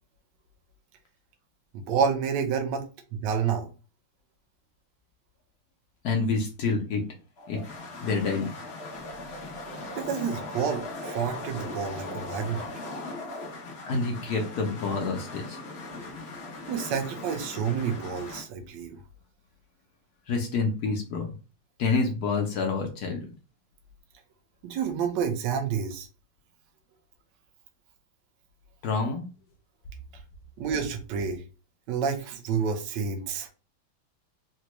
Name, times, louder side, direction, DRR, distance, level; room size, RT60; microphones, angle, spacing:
voice 1, 1.7-3.7 10.0-12.7 16.7-19.0 24.6-26.1 30.6-31.4 31.9-33.5, right 6 dB, 70° right, 4 dB, 1.2 m, -29 dB
voice 2, 6.0-7.0 7.5-7.6 8.0-8.5 13.8-15.6 20.3-21.3 21.8-23.3 28.8-29.2, left 4 dB, 70° left, 2 dB, 0.9 m, -27 dB
sound 1, 7.4-18.5, left 2 dB, 85° left, 0.5 m, -39 dB
4.0 x 2.2 x 2.9 m, 0.33 s
omnidirectional pair, 2.3 m